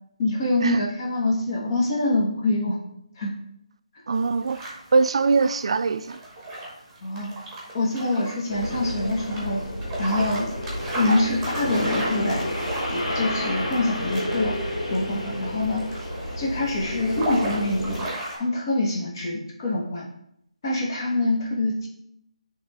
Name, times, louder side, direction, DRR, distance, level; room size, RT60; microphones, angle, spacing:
voice 1, 0.2-2.8 3.2-3.3 7.0-7.3 7.7-9.6 10.0-10.5 10.9-12.5 12.9-14.6 14.9-15.8 16.4-18.0 18.4-20.1 20.6-21.9, left 2 dB, 35° left, -2 dB, 1.2 m, -25 dB
sound 1, 4.1-18.4, right 1 dB, 5° right, 1.2 m, -35 dB
voice 2, 4.1-6.2, right 4 dB, 50° right, 12 dB, 0.3 m, -22 dB
sound 2, 8.5-18.1, left 1 dB, 75° left, 2.3 m, -30 dB
8.5 x 3.3 x 3.6 m, 0.74 s
hypercardioid pair, 165°, 4 cm